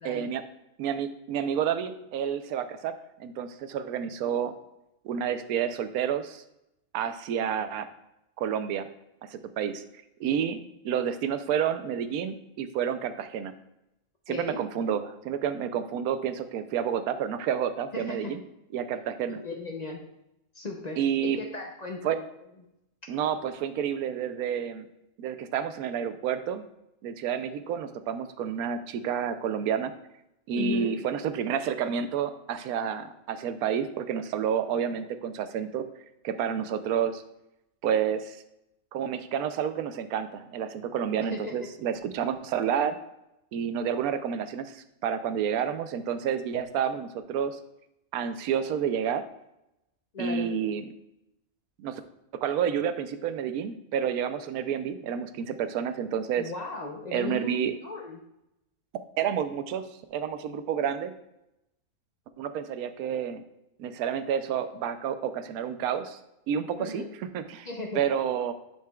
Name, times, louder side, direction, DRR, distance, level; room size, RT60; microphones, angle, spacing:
voice 1, 0.0-0.4 0.8-2.9 3.2-4.5 5.0-6.4 6.9-7.9 8.4-8.9 9.3-9.8 10.2-10.6 10.8-13.5 14.3-18.4 18.7-19.4 21.0-21.4 22.0-22.2 23.1-24.9 25.2-26.6 27.0-29.9 30.5-35.8 36.2-37.2 37.8-38.4 38.9-43.0 43.5-47.6 48.1-49.2 50.2-50.9 51.8-52.0 52.4-56.5 57.1-57.7 59.2-61.1 62.4-63.4 63.8-66.2 66.5-67.0 67.3-67.7 67.9-68.5, right 8 dB, 85° right, 10 dB, 1.1 m, -29 dB
voice 2, 14.3-14.6 17.9-18.3 19.3-20.0 20.5-22.2 30.5-30.9 41.2-41.7 50.1-50.5 56.4-58.2 66.8-67.1 67.6-68.0, left 2 dB, 45° left, 1 dB, 0.6 m, -36 dB
10.5 x 5.9 x 2.3 m, 0.87 s
omnidirectional pair, 1.5 m